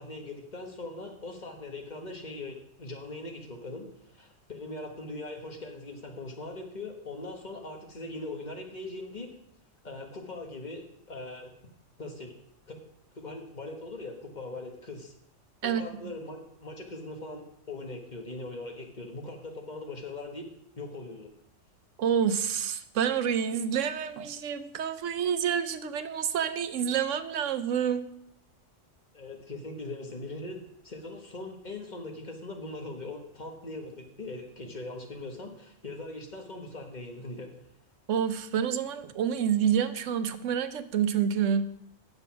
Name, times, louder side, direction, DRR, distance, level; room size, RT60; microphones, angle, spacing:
voice 1, 0.0-9.3 9.8-11.5 12.0-12.4 12.7-12.8 13.1-15.1 15.6-20.5 20.8-21.3 29.1-37.5, left 2 dB, 35° left, 2 dB, 1.4 m, -40 dB
voice 2, 22.0-28.1 38.1-41.7, right 8 dB, 80° right, 11 dB, 1.0 m, -28 dB
8.0 x 6.9 x 5.7 m, 0.74 s
omnidirectional pair, 1.3 m